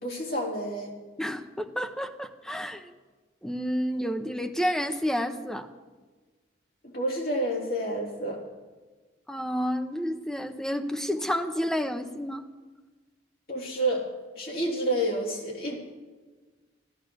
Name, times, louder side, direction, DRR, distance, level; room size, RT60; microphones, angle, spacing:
voice 1, 0.0-0.9 6.8-8.4 13.5-14.1 14.3-15.8, right 1 dB, 50° left, -2 dB, 3.4 m, -29 dB
voice 2, 1.2-2.9 3.4-5.7 9.3-12.4, equal, 5° left, 6 dB, 0.7 m, -30 dB
14.0 x 11.5 x 6.3 m, 1.3 s
head